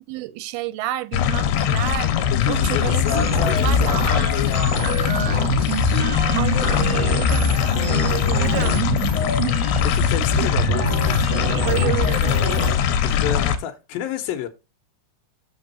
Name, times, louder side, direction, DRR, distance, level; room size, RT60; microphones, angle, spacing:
voice 1, 0.1-2.1 2.5-3.3 3.6-4.1 6.0-8.9 11.6-12.4, right 15 dB, 80° right, 2.6 m, -30 dB
sound 1, 1.1-13.6, left 9 dB, 90° left, 2.7 m, -21 dB
voice 2, 2.3-4.8 5.1-5.9 8.0-8.9 9.2-10.9 13.0-14.5, left 10 dB, 75° left, 2.7 m, -31 dB
sound 2, 3.0-12.8, right 3 dB, 65° right, 3.0 m, -26 dB
6.4 x 6.0 x 4.1 m
omnidirectional pair, 4.5 m